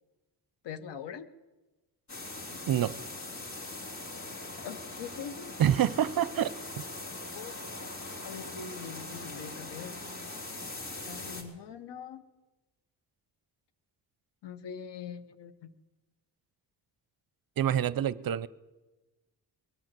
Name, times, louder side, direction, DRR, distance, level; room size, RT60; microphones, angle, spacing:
voice 1, 0.6-1.3 4.6-5.5 7.3-7.5 7.8-7.9 8.2-10.1 11.0-12.2 14.4-15.7, left 7 dB, 75° left, 1.1 m, -43 dB
sound 1, 2.1-11.4, left 2 dB, 40° left, 3.7 m, -41 dB
voice 2, 5.6-6.8 17.6-18.5, right 10 dB, 55° right, 0.6 m, -27 dB
22.5 x 7.9 x 7.5 m
cardioid pair, 70°, 42 cm